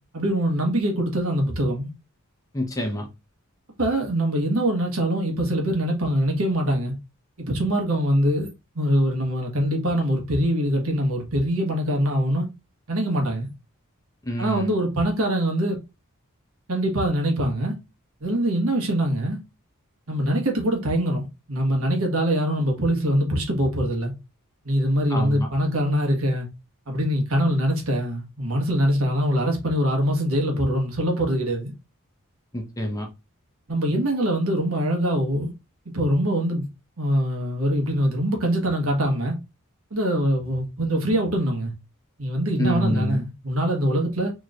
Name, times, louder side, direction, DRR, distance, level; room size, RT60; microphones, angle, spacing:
voice 1, 0.1-1.9 3.8-6.9 7.4-8.5 8.7-12.5 12.9-13.5 14.4-15.7 16.7-17.8 18.2-19.4 20.1-24.1 24.6-26.5 26.9-31.7 33.7-35.5 35.8-36.7 37.0-39.4 39.9-41.7 42.2-44.3, equal, 70° right, 1.3 m, -23 dB
voice 2, 2.5-3.0 14.3-14.7 25.1-25.5 32.5-33.1 42.6-43.2, equal, 15° left, 0.8 m, -26 dB
4.5 x 3.1 x 2.5 m
head